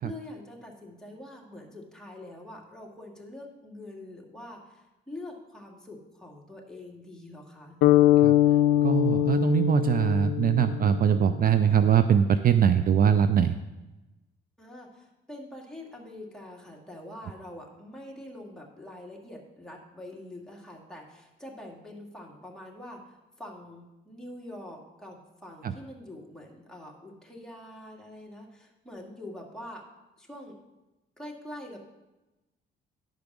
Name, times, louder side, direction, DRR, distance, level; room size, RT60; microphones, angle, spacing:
voice 1, 0.0-7.8 14.6-29.9 30.2-30.6 31.2-31.8, left 1 dB, 5° left, -2 dB, 2.2 m, -44 dB
sound 1, 7.8-11.7, left 13 dB, 85° left, 0.4 m, -23 dB
voice 2, 8.8-13.5 25.6-25.7, right 8 dB, 45° right, 11 dB, 0.4 m, -22 dB
10.5 x 5.1 x 6.2 m, 1.0 s
cardioid pair, 90°, 20 cm